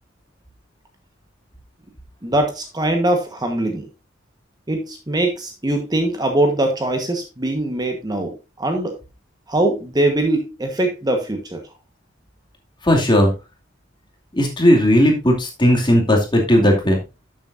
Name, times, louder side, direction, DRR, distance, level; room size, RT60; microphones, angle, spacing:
voice 1, 2.2-3.9 4.7-9.0 9.5-11.6, right 1 dB, 20° right, 4 dB, 1.3 m, -22 dB
voice 2, 12.8-13.3 14.3-17.0, equal, 25° left, 1 dB, 2.5 m, -16 dB
12.0 x 7.4 x 2.6 m, 0.27 s
head